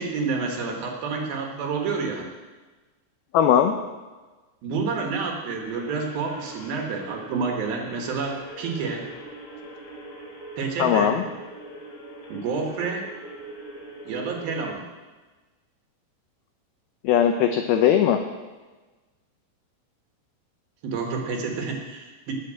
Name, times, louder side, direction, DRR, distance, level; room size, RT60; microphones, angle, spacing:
voice 1, 0.0-2.3 4.6-9.1 10.6-11.2 12.3-13.1 14.1-14.9 20.8-22.3, right 4 dB, 60° right, 2 dB, 3.0 m, -29 dB
voice 2, 3.3-3.7 10.8-11.2 17.0-18.2, left 9 dB, 90° left, 6 dB, 2.1 m, -19 dB
sound 1, 5.6-14.7, right 2 dB, 65° left, 5.9 m, -42 dB
19.0 x 6.7 x 7.6 m, 1.2 s
omnidirectional pair, 5.3 m